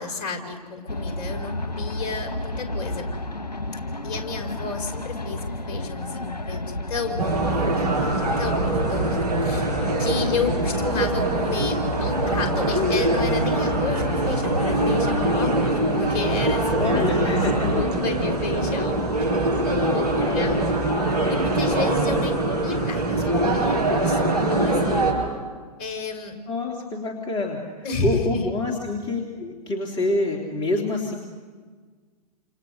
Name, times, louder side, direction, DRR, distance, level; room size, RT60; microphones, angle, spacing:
voice 1, 0.0-3.1 4.0-6.6 6.9-9.7 10.0-17.4 17.7-19.0 19.6-20.8 21.3-25.0 25.8-26.4 27.8-28.5, left 4 dB, 45° left, 5 dB, 5.2 m, -31 dB
sound 1, 0.9-17.9, left 2 dB, 85° left, 1.3 m, -31 dB
sound 2, 7.2-25.1, right 2 dB, 70° right, 7.8 m, -23 dB
voice 2, 16.8-17.8 20.2-20.8 26.5-27.6 28.0-31.1, left 2 dB, 25° left, 0 dB, 3.1 m, -27 dB
29.5 x 28.0 x 6.5 m, 1.5 s
figure-of-eight pair, 110°, 21 cm